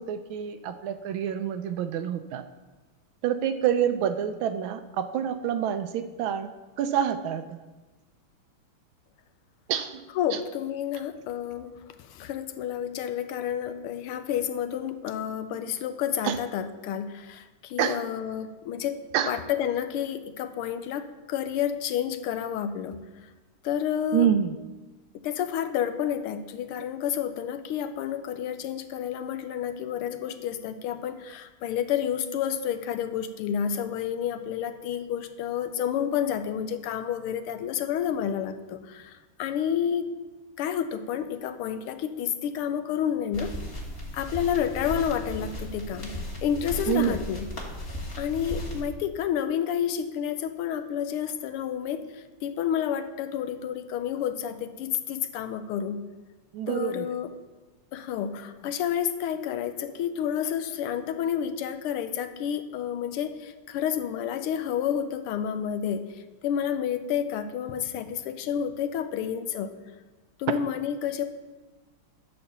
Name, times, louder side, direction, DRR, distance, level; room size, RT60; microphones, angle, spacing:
voice 1, 0.0-2.4 3.2-6.5 6.8-7.6 9.7-10.0 10.3-10.4 16.2-16.4 17.8-18.0 19.1-19.4 24.1-24.6 46.9-47.2 56.5-57.1, right 9 dB, 75° right, 9 dB, 1.3 m, -27 dB
voice 2, 10.1-19.0 19.3-23.0 23.6-24.3 25.2-40.1 40.6-43.5 44.1-46.2 46.4-47.5 48.2-56.0 56.7-57.3 57.9-66.0 66.4-69.7 70.4-71.3, left 9 dB, 85° left, 10 dB, 1.6 m, -30 dB
sound 1, 43.3-48.8, equal, 30° left, 1.6 m, -36 dB
11.0 x 4.3 x 6.8 m, 1.2 s
omnidirectional pair, 2.4 m